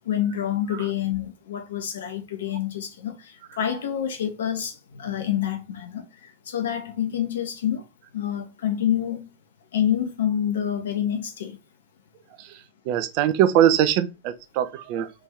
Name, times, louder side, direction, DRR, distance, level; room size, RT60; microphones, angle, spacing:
voice 1, 0.1-3.1 3.6-6.0 6.5-7.8 8.1-9.2 9.7-11.5, left 10 dB, 65° left, 0.7 m, -27 dB
voice 2, 12.4-15.1, right 10 dB, 45° right, 0.4 m, -22 dB
3.1 x 2.5 x 3.3 m
figure-of-eight pair, 90°, 0 cm